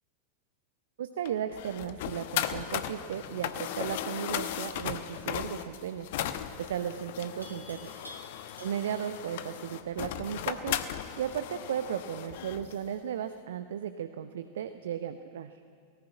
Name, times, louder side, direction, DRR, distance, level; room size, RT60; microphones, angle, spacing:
voice 1, 1.0-6.1 6.6-8.0 8.6-10.8 11.2-15.6, right 9 dB, 60° right, 10 dB, 0.7 m, -35 dB
sound 1, 1.3-12.8, left 11 dB, 50° left, 1.0 m, -37 dB
Livestock farm animals working animals, 4.6-5.0 7.4-9.1, equal, 85° right, 3.0 m, -50 dB
18.0 x 18.0 x 8.8 m, 2.3 s
figure-of-eight pair, 90°, 0 cm